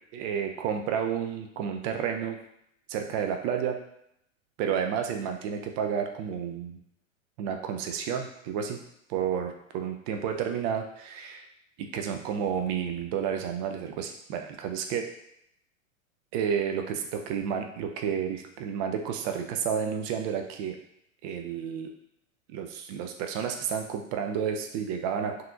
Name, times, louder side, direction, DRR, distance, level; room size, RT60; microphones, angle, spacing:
voice 1, 0.1-2.4 2.9-3.8 4.6-6.8 7.4-8.8 9.1-11.5 11.8-15.1 16.3-20.8 21.2-21.9 22.5-25.4, right 7 dB, 35° right, 4 dB, 0.4 m, -31 dB
3.6 x 2.7 x 2.4 m, 0.74 s
hypercardioid pair, 105°, 40 cm